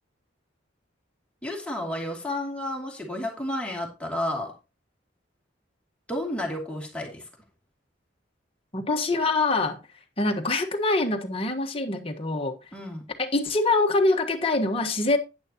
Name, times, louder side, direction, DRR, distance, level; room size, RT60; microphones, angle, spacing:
voice 1, 1.4-4.5 6.1-7.2 12.7-13.1, left 1 dB, 5° left, 2.7 m, -31 dB
voice 2, 8.7-9.8 10.2-12.5 13.2-15.2, left 2 dB, 30° left, 1.4 m, -24 dB
11.0 x 9.9 x 2.9 m
head